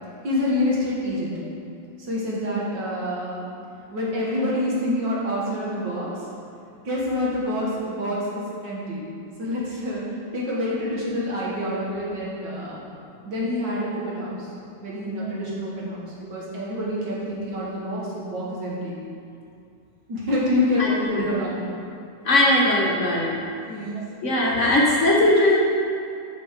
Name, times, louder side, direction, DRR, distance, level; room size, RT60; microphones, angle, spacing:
voice 1, 0.2-1.3 2.0-3.4 3.9-6.1 6.8-9.1 9.4-10.0 10.3-12.8 13.3-14.5 14.8-19.0 20.1-21.6 23.6-24.0, left 1 dB, 70° right, -6 dB, 2.3 m, -27 dB
voice 2, 20.8-21.3 22.2-23.3 24.2-25.5, left 1 dB, 50° left, -4 dB, 1.1 m, -19 dB
8.2 x 5.2 x 5.1 m, 2.5 s
omnidirectional pair, 2.0 m